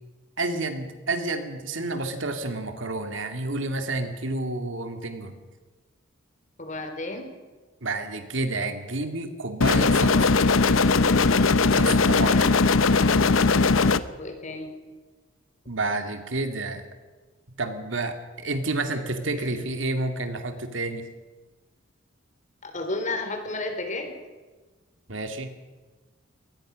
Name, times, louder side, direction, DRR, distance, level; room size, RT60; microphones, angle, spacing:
voice 1, 0.4-5.4 7.8-10.3 11.7-12.4 15.7-16.9 17.6-21.1 25.1-25.5, right 2 dB, 65° right, 7 dB, 2.4 m, -30 dB
voice 2, 6.6-7.3 12.2-12.5 14.2-14.7 19.4-19.6 22.6-24.1, left 2 dB, 40° left, 6 dB, 3.8 m, -32 dB
sound 1, 9.6-14.0, left 4 dB, 85° left, 0.9 m, -19 dB
23.0 x 19.5 x 6.4 m, 1.3 s
head